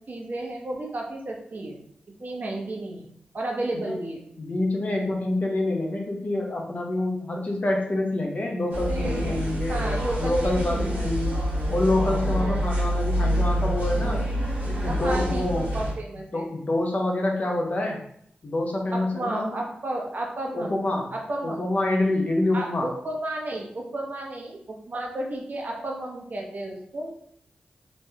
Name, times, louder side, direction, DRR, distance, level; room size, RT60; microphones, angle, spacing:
voice 1, 0.1-1.8 2.2-4.2 9.7-11.1 12.2-12.6 14.8-16.4 18.9-21.6 22.5-27.1, right 1 dB, 55° right, -1 dB, 0.8 m, -33 dB
voice 2, 4.3-9.8 10.2-11.4 11.7-14.2 14.6-15.7 16.3-18.0 18.4-19.6 20.5-21.1 21.4-22.9, left 2 dB, 45° left, 1 dB, 0.7 m, -26 dB
sound 1, 8.7-15.9, equal, 75° right, 1.1 m, -26 dB
3.1 x 2.2 x 2.8 m, 0.68 s
cardioid pair, 50°, 4 cm